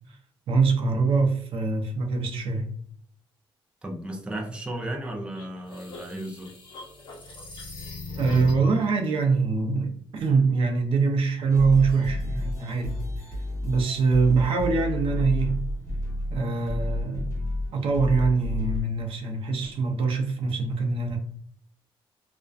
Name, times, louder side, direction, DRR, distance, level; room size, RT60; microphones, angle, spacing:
voice 1, 0.5-2.7 8.2-13.0 13.6-15.6 16.3-17.3 17.7-21.2, right 4 dB, 70° right, 3 dB, 0.5 m, -24 dB
voice 2, 3.8-6.5, right 1 dB, 10° right, 1 dB, 0.5 m, -34 dB
sound 1, 5.3-8.8, left 2 dB, 55° left, 0.6 m, -38 dB
sound 2, 11.5-18.8, left 2 dB, 35° left, 1.0 m, -31 dB
2.4 x 2.2 x 2.3 m, 0.63 s
cardioid pair, 120°, 9 cm